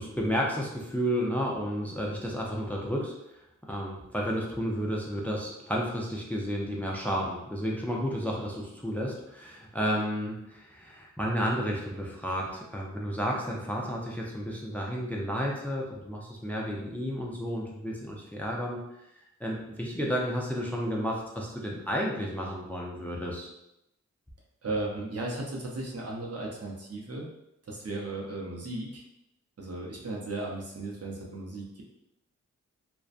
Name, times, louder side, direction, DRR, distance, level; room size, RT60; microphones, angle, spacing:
voice 1, 0.0-3.1 3.6-18.8 19.4-23.5, equal, 5° left, -2 dB, 0.5 m, -32 dB
voice 2, 24.6-27.3 27.6-29.0 29.6-31.8, right 2 dB, 50° right, -1 dB, 0.7 m, -35 dB
2.5 x 2.2 x 2.4 m, 0.85 s
cardioid pair, 45°, 31 cm